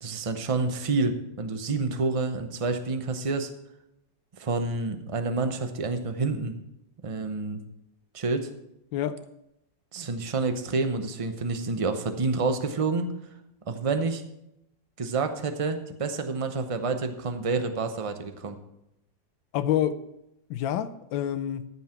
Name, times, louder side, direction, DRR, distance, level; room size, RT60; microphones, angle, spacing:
voice 1, 0.0-3.5 4.4-6.5 7.0-7.6 8.1-8.5 9.9-13.1 13.7-14.2 15.0-18.6, right 3 dB, 45° right, 0.4 m, -28 dB
voice 2, 8.9-9.2 19.5-20.0 20.5-21.7, left 10 dB, 90° left, 1.4 m, -27 dB
14.0 x 5.7 x 5.8 m
omnidirectional pair, 2.0 m